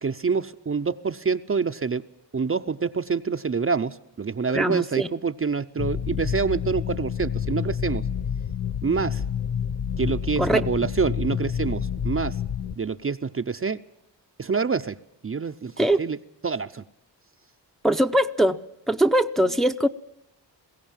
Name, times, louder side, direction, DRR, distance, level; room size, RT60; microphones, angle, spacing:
voice 1, 0.0-2.0 2.3-8.0 8.8-9.2 10.0-12.4 12.8-13.8 14.4-15.0 15.2-16.2 16.4-16.8, right 5 dB, 30° right, 9 dB, 0.7 m, -26 dB
voice 2, 4.5-5.1 10.4-10.6 15.8-16.0 17.8-18.6 18.9-19.9, right 1 dB, ahead, 7 dB, 0.7 m, -21 dB
sound 1, 5.8-12.8, left 8 dB, 35° left, 0.7 m, -29 dB
22.0 x 16.5 x 7.3 m, 0.86 s
wide cardioid pair, 95°, 43 cm